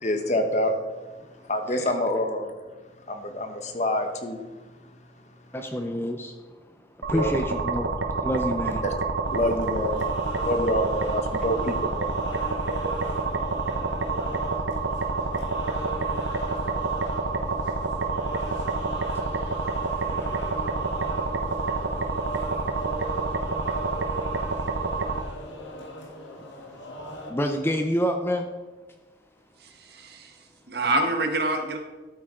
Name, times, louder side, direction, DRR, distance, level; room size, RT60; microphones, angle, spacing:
voice 1, 0.0-0.7 1.5-2.5 3.1-4.4 7.1-7.3 8.8-8.9 9.3-10.0 10.4-12.1, left 1 dB, 40° left, 6 dB, 1.1 m, -26 dB
voice 2, 5.5-6.4 6.6-8.8 14.1-28.5, equal, 10° left, 5 dB, 0.6 m, -34 dB
sound 1, 7.0-25.2, right 3 dB, 85° right, 1.0 m, -28 dB
sound 2, 9.2-27.3, equal, 85° left, 1.7 m, -38 dB
voice 3, 29.6-31.8, right 2 dB, 60° right, 5 dB, 1.3 m, -27 dB
13.0 x 8.7 x 3.8 m, 1.3 s
head